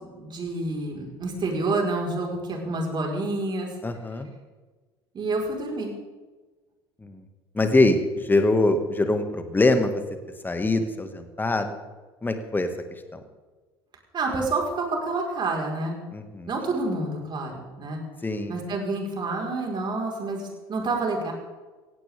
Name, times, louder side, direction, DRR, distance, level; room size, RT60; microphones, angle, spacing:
voice 1, 0.1-3.7 5.1-5.9 14.1-16.0 16.5-18.0 18.5-21.3, right 2 dB, 35° right, 0 dB, 4.7 m, -28 dB
voice 2, 3.8-4.3 7.0-7.2 7.5-9.9 10.4-11.8 12.2-12.7 13.1-13.2 16.1-16.5 18.2-18.5, left 2 dB, 15° left, 7 dB, 2.0 m, -23 dB
17.5 x 16.5 x 3.7 m, 1.3 s
figure-of-eight pair, 70°, 14 cm